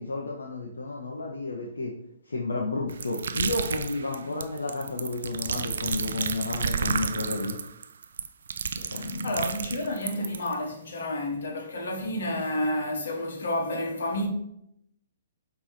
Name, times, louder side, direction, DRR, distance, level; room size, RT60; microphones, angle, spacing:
voice 1, 0.0-1.9 2.3-7.6 8.7-9.5, left 3 dB, 85° left, 0.6 m, -32 dB
sound 1, 2.9-10.5, right 6 dB, 70° right, 0.3 m, -31 dB
voice 2, 9.0-14.3, left 1 dB, 70° left, 1.1 m, -30 dB
5.3 x 2.9 x 3.1 m
hypercardioid pair, 130°, 0 cm